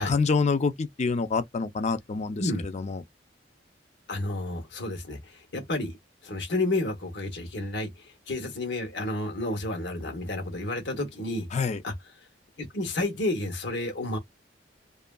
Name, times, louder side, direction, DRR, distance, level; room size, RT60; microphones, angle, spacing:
voice 1, 0.0-2.4 2.7-3.0 11.5-11.8, left 4 dB, 40° left, 0.4 m, -26 dB
voice 2, 4.1-6.0 6.2-11.5 11.8-11.9 12.6-14.2, left 2 dB, 75° left, 0.9 m, -31 dB
2.7 x 2.4 x 2.2 m
head